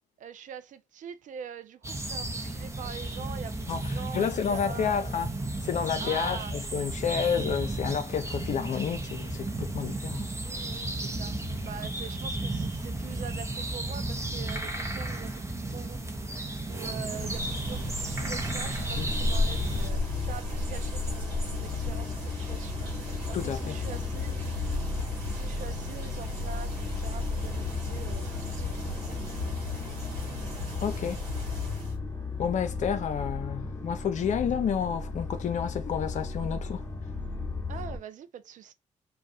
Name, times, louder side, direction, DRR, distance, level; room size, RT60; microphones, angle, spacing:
voice 1, 0.2-5.1 6.0-6.5 10.3-11.4 11.6-24.6 25.3-29.6 37.7-38.7, right 8 dB, 55° right, 0.4 m, -44 dB
sound 1, 1.8-19.9, right 2 dB, 20° right, 0.6 m, -34 dB
voice 2, 4.1-5.3 5.6-10.2 19.0-19.1 23.3-23.8 30.8-31.2 32.4-36.8, left 7 dB, 50° left, 0.4 m, -30 dB
sound 2, 16.8-32.0, left 2 dB, 80° right, 1.1 m, -35 dB
sound 3, 18.9-38.0, left 3 dB, 15° left, 0.9 m, -35 dB
2.3 x 2.1 x 2.6 m
hypercardioid pair, 45°, 15 cm